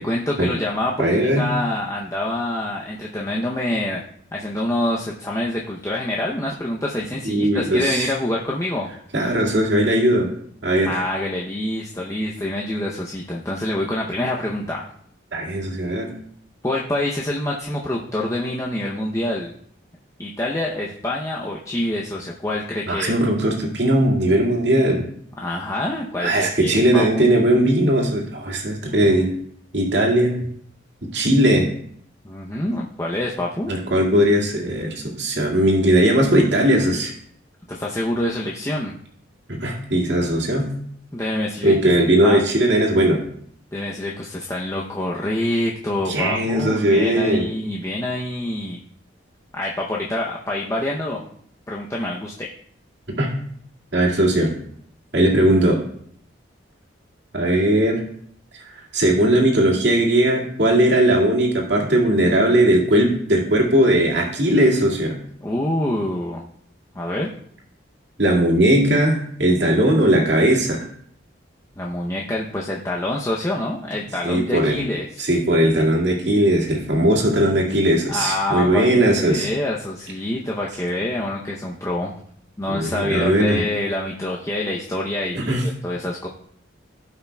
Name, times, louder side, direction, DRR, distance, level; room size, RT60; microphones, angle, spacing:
voice 1, 0.0-4.0 4.3-8.9 10.8-14.9 16.6-19.5 20.2-23.1 25.4-26.3 26.6-27.2 32.2-33.7 37.7-38.9 41.1-41.7 42.2-42.4 43.7-48.8 49.5-51.3 51.7-52.5 65.4-66.4 66.9-67.3 71.8-75.2 78.1-82.1 82.6-85.4 85.8-86.3, left 1 dB, 15° left, -3 dB, 0.7 m, -26 dB
voice 2, 1.0-1.5 7.2-8.1 9.1-10.3 10.6-11.0 15.3-16.1 22.9-25.1 26.2-29.3 29.7-30.4 31.1-31.7 33.7-37.1 39.5-40.7 41.6-43.2 46.1-47.5 53.2-53.3 53.9-54.6 55.1-55.8 57.3-58.0 58.7-65.2 68.2-70.9 74.2-74.8 75.2-79.5 82.7-83.6 85.3-85.6, right 1 dB, 60° right, -2 dB, 2.2 m, -18 dB
17.0 x 5.7 x 2.3 m, 0.64 s
head